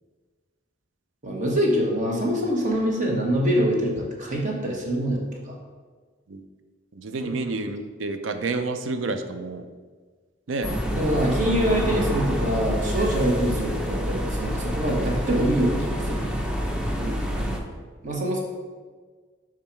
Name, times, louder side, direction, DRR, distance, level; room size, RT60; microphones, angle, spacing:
voice 1, 1.2-5.6 7.2-7.3 10.7-16.3 18.0-18.4, equal, 40° right, -1 dB, 1.2 m, -25 dB
voice 2, 6.9-9.7 10.5-10.8 17.0-17.6, right 3 dB, 80° right, 8 dB, 0.5 m, -30 dB
sound 1, 10.6-17.6, equal, 5° right, 0.6 m, -27 dB
5.4 x 4.9 x 4.5 m, 1.5 s
head